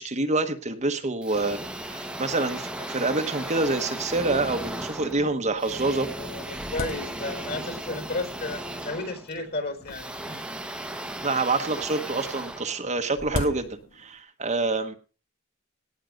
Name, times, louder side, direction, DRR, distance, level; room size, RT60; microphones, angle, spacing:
voice 1, 0.0-6.1 11.2-14.9, right 3 dB, 35° right, 6 dB, 1.2 m, -27 dB
sound 1, 1.2-13.4, right 1 dB, 5° right, 1.0 m, -36 dB
sound 2, 5.4-5.5 5.9-7.7 8.4-8.8 9.8-11.1 12.4-14.2, left 2 dB, 70° left, 1.6 m, -38 dB
voice 2, 6.1-10.4, left 2 dB, 50° left, 6 dB, 4.7 m, -33 dB
18.5 x 6.4 x 5.2 m, 0.36 s
head